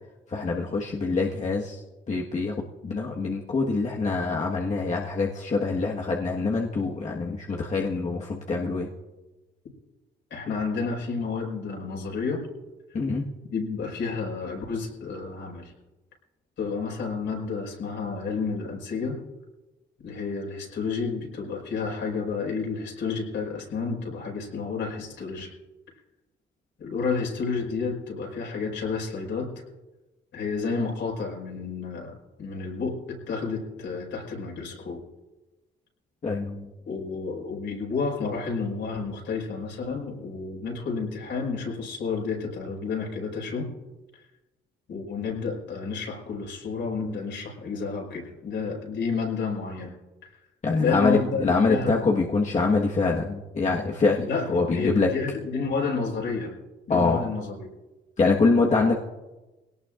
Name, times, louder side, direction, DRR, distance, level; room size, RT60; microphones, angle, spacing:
voice 1, 0.3-8.9 12.9-13.2 36.2-36.7 50.6-55.1 56.9-57.3 58.2-58.9, left 3 dB, 35° left, -2 dB, 1.5 m, -25 dB
voice 2, 10.3-12.5 12.9-13.0 13.5-15.7 16.6-19.2 20.0-25.5 26.8-29.5 30.3-35.0 36.9-43.7 44.9-49.9 50.2-50.3 50.8-52.0 54.2-56.5 56.9-57.7, left 4 dB, 65° left, -1 dB, 5.4 m, -30 dB
22.0 x 18.0 x 2.5 m, 1.1 s
cardioid pair, 90°, 20 cm